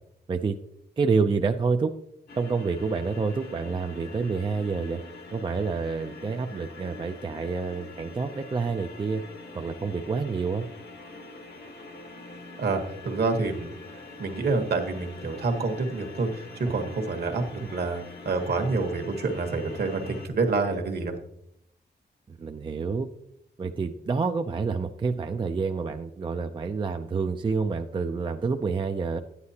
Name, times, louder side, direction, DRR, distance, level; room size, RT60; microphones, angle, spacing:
voice 1, 1.0-1.9 2.4-5.0 5.3-9.2 9.5-10.7 16.7-17.1 17.6-17.7 22.3-23.1 23.6-29.2, right 4 dB, 25° right, 6 dB, 0.4 m, -28 dB
sound 1, 2.3-20.3, left 2 dB, 60° left, 1.2 m, -44 dB
voice 2, 12.6-21.1, right 3 dB, 60° right, 5 dB, 1.3 m, -28 dB
10.5 x 9.7 x 2.8 m, 0.77 s
wide cardioid pair, 155°, 18 cm